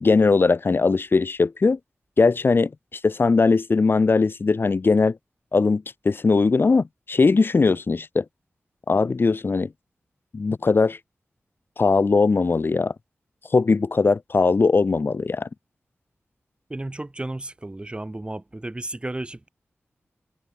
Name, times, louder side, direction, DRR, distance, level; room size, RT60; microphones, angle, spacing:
voice 1, 0.0-1.8 2.2-2.7 3.0-5.2 5.5-8.2 8.9-9.7 10.3-11.0 11.8-12.9 13.5-15.5, left 4 dB, 50° left, 1.7 m, -20 dB
voice 2, 16.7-19.5, right 2 dB, 20° right, 2.2 m, -33 dB
wide cardioid pair, 80°, 5 cm